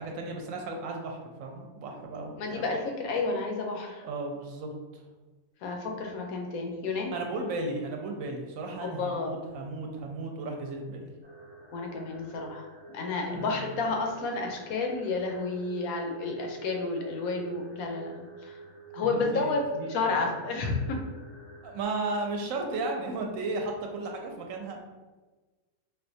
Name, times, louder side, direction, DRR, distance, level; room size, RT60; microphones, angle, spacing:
voice 1, 0.0-2.7 4.0-5.0 7.1-11.1 13.3-13.9 19.1-20.3 21.6-24.8, right 2 dB, 75° right, 2 dB, 0.9 m, -35 dB
voice 2, 2.4-4.0 5.6-7.1 8.8-9.4 11.7-12.7 12.9-18.6 18.9-21.0, left 3 dB, 80° left, 2 dB, 1.1 m, -31 dB
sound 1, 11.2-21.8, right 3 dB, 30° left, 0.5 m, -48 dB
4.0 x 2.2 x 2.6 m, 1.2 s
omnidirectional pair, 1.5 m